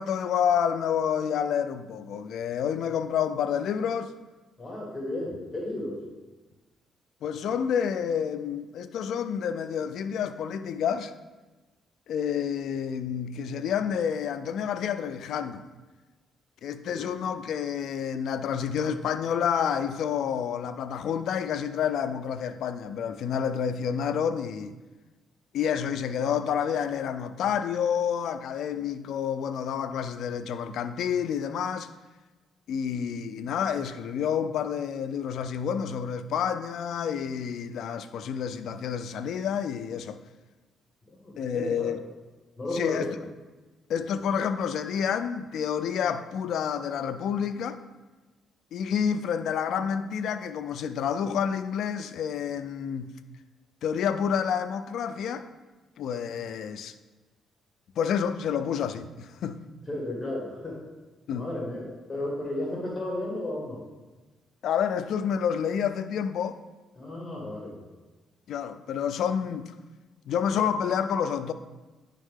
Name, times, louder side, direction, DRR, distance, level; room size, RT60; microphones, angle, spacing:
voice 1, 0.0-4.1 7.2-11.1 12.1-15.7 16.6-24.7 25.5-31.9 32.7-40.2 41.4-42.0 42.7-43.1 43.9-47.8 48.7-53.1 53.8-55.5 56.0-56.9 58.0-59.6 61.3-61.5 64.6-66.6 68.5-69.7 70.3-71.5, left 8 dB, 75° left, 0.4 m, -29 dB
voice 2, 4.6-6.0 16.9-17.0 41.1-41.9 42.6-43.0 59.9-60.8 61.3-63.8 67.0-67.8, left 1 dB, 20° left, 1.9 m, -33 dB
9.9 x 3.6 x 3.7 m
cardioid pair, 90°, 0 cm